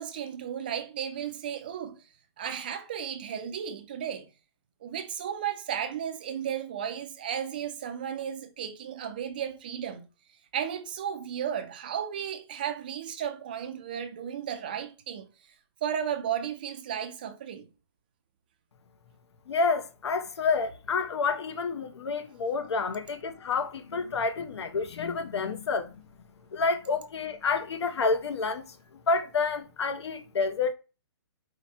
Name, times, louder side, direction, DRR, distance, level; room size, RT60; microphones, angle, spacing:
voice 1, 0.0-2.0 2.4-4.3 4.8-10.1 10.5-15.3 15.8-17.7, right 9 dB, 20° right, 0.3 m, -34 dB
voice 2, 19.5-25.9 26.5-28.6 29.1-30.7, left 4 dB, 70° left, 0.6 m, -29 dB
4.7 x 2.1 x 4.2 m
hypercardioid pair, 165°, 15 cm